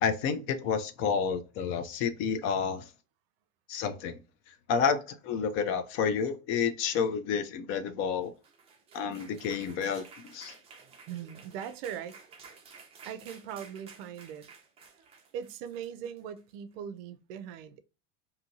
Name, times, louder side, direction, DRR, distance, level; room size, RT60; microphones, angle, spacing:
voice 1, 0.0-2.9 3.7-4.2 4.7-8.3 8.9-10.5, left 6 dB, 40° left, 0.4 m, -30 dB
sound 1, 8.2-16.5, right 5 dB, 20° right, 0.6 m, -53 dB
voice 2, 11.1-12.6 13.0-14.5 15.3-17.8, right 9 dB, 65° right, 0.5 m, -40 dB
2.7 x 2.6 x 2.8 m
supercardioid pair, 150°, 32 cm